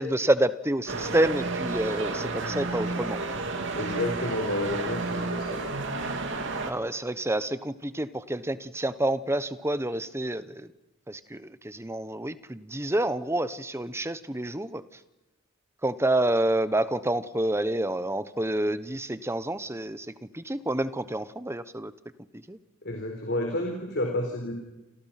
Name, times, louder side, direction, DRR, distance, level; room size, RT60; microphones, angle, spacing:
voice 1, 0.0-3.2 6.6-10.7 11.1-14.8 15.8-20.1 20.3-21.9 22.5-22.6, right 1 dB, 10° right, 13 dB, 1.1 m, -28 dB
sound 1, 0.9-6.7, right 3 dB, 60° right, 3.0 m, -31 dB
voice 2, 3.8-5.7 22.8-24.5, left 1 dB, 55° left, 2 dB, 4.3 m, -30 dB
30.0 x 27.5 x 5.9 m, 0.99 s
head